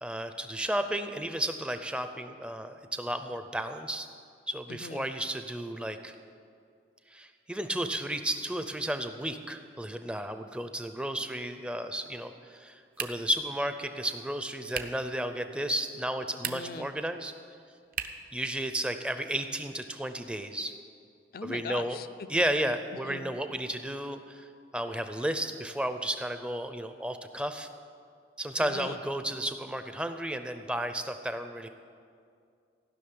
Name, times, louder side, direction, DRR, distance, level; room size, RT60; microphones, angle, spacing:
voice 1, 0.0-4.1 4.5-6.2 7.1-17.3 18.3-20.7 21.4-22.0 22.3-24.5 24.7-27.7 28.4-31.7, right 1 dB, 5° right, 8 dB, 0.5 m, -33 dB
voice 2, 4.7-5.1 16.4-16.9 21.3-22.3 23.1-23.3 28.6-29.0, left 4 dB, 55° left, 13 dB, 0.5 m, -40 dB
sound 1, 12.9-13.4 14.7-15.1 16.3-16.9 17.9-18.3, right 8 dB, 50° right, 0.7 m, -37 dB
16.0 x 6.2 x 9.6 m, 2.3 s
head